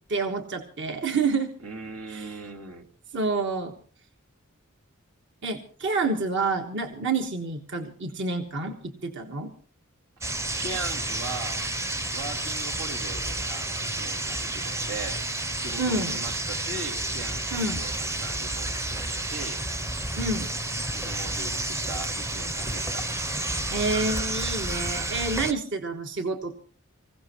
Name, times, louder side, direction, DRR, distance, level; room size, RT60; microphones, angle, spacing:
voice 1, 0.1-1.5 2.1-2.4 3.1-3.7 5.4-9.5 15.8-16.2 17.5-17.8 20.2-20.5 23.7-26.5, right 3 dB, 60° right, 4 dB, 1.3 m, -28 dB
voice 2, 1.6-2.9 10.6-11.7 12.1-15.2 15.5-19.6 20.9-23.1, right 3 dB, 90° right, 2 dB, 2.6 m, -39 dB
sound 1, 10.2-25.5, right 2 dB, 15° right, 0.6 m, -30 dB
25.5 x 16.5 x 3.0 m, 0.43 s
head